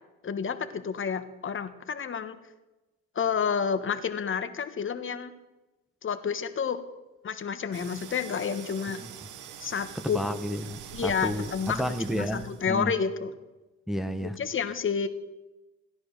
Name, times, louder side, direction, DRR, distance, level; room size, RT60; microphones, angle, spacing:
voice 1, 0.2-2.4 3.1-5.3 6.0-6.8 7.2-9.0 9.6-10.4 10.9-13.3 14.4-15.1, left 6 dB, 40° left, 1.4 m, -30 dB
sound 1, 7.7-12.8, right 9 dB, 85° right, 1.1 m, -44 dB
voice 2, 9.9-12.9 13.9-14.4, equal, ahead, 1.0 m, -31 dB
15.5 x 10.5 x 6.6 m
cardioid pair, 90°, 30 cm